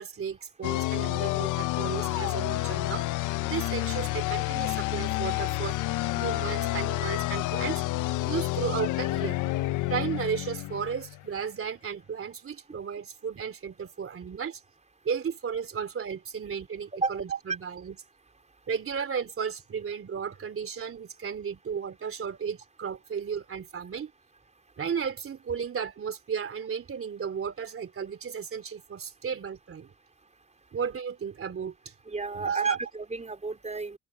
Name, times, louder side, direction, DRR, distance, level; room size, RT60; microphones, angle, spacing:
voice 1, 0.0-3.1 3.4-5.8 6.2-7.8 8.2-9.4 9.9-14.6 15.0-18.0 18.7-24.1 24.8-29.9 30.7-31.9 32.4-32.8, right 7 dB, 45° right, 3.3 m, -34 dB
sound 1, 0.6-11.3, left 18 dB, 85° left, 0.6 m, -29 dB
voice 2, 32.1-34.0, right 3 dB, 25° right, 4.2 m, -33 dB
open air
cardioid pair, 90°, 30 cm